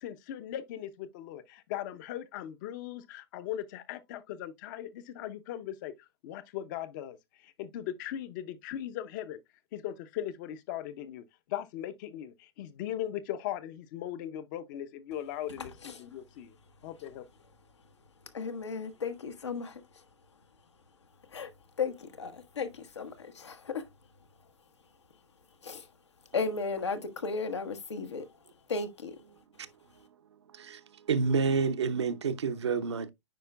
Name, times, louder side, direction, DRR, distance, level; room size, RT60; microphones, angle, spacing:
voice 1, 0.0-5.9 6.2-7.2 7.4-9.4 9.7-16.5 16.8-17.2, left 11 dB, 45° left, 0.7 m, -39 dB
voice 2, 15.6-16.1 18.2-20.0 21.2-23.9 25.6-25.9 26.3-28.4 28.7-29.2, left 4 dB, 80° left, 1.2 m, -35 dB
voice 3, 31.1-33.1, right 5 dB, 80° right, 0.8 m, -28 dB
9.1 x 5.0 x 2.2 m
hypercardioid pair, 115°, 14 cm